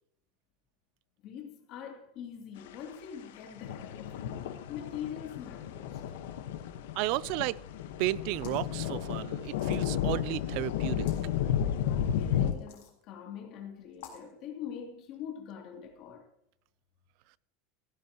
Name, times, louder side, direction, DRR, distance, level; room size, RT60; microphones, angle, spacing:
voice 1, 1.2-4.3 4.7-6.0 11.7-16.3, left 8 dB, 40° left, 2.8 m, -43 dB
sound 1, 2.7-2.8 3.4-12.5, left 9 dB, 80° left, 1.2 m, -33 dB
voice 2, 7.0-7.6 8.0-11.1, right 18 dB, 50° right, 0.4 m, -33 dB
sound 2, 8.2-8.7 9.6-10.2 10.9-11.2 12.5-12.9 13.9-14.3, left 8 dB, 65° left, 3.6 m, -51 dB
15.0 x 11.5 x 3.0 m
supercardioid pair, 170°, 0 cm